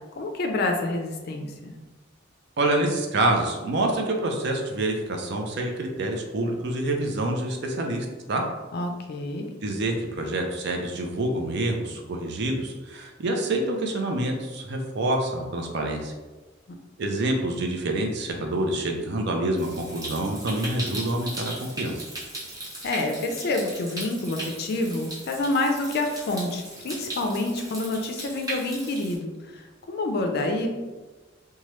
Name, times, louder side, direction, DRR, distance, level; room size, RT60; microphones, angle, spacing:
voice 1, 0.2-1.7 8.7-9.5 22.8-30.7, left 2 dB, 55° left, 3 dB, 0.4 m, -28 dB
voice 2, 2.6-8.4 9.6-16.1 17.0-22.1, right 1 dB, 60° right, 2 dB, 0.5 m, -27 dB
Stream, 19.6-29.1, right 1 dB, 20° right, 0.9 m, -38 dB
3.0 x 2.3 x 3.0 m, 1.2 s
head